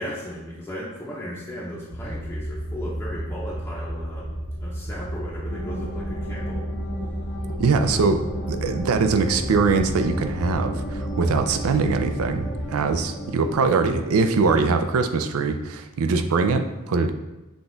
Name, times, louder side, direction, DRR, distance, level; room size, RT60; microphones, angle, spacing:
voice 1, 0.0-4.3 4.6-6.6, equal, 15° left, -7 dB, 0.6 m, -35 dB
sound 1, 1.9-12.6, equal, 85° left, 1.3 m, -32 dB
sound 2, 5.5-14.7, equal, 60° left, 0.8 m, -34 dB
voice 2, 7.6-8.2 8.5-17.1, right 4 dB, 90° right, 8 dB, 0.4 m, -22 dB
5.9 x 2.3 x 3.8 m, 1.1 s
head